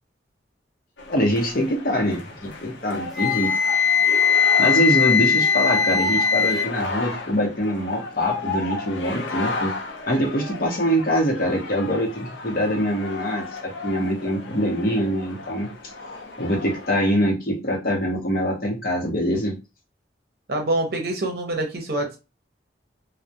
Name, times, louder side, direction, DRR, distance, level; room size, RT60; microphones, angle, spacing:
sound 1, 1.0-17.0, left 3 dB, 80° left, 0.6 m, -33 dB
voice 1, 1.1-3.5 4.6-9.7 10.1-15.7 16.4-19.5, equal, 50° left, -1 dB, 0.8 m, -24 dB
Wind instrument woodwind instrument, 3.2-6.7, left 6 dB, ahead, 0.4 m, -19 dB
voice 2, 20.5-22.2, right 2 dB, 55° right, 3 dB, 0.6 m, -25 dB
2.2 x 2.1 x 2.7 m, 0.28 s
head